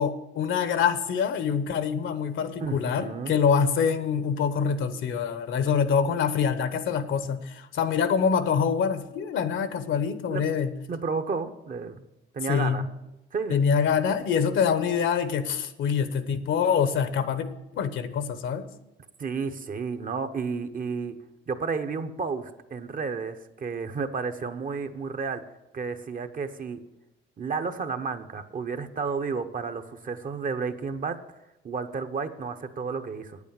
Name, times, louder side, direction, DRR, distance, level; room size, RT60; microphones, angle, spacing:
voice 1, 0.0-10.7 12.5-12.9 13.5-17.5 17.7-18.7, left 6 dB, 75° left, 11 dB, 1.0 m, -25 dB
voice 2, 2.6-3.3 10.3-10.4 10.9-12.1 12.3-12.9 13.3-13.6 19.2-21.2 21.5-25.4 25.7-26.8 27.4-31.2 31.6-33.4, right 5 dB, 45° right, 9 dB, 0.9 m, -32 dB
9.1 x 8.3 x 7.1 m, 0.95 s
cardioid pair, 90°, 20 cm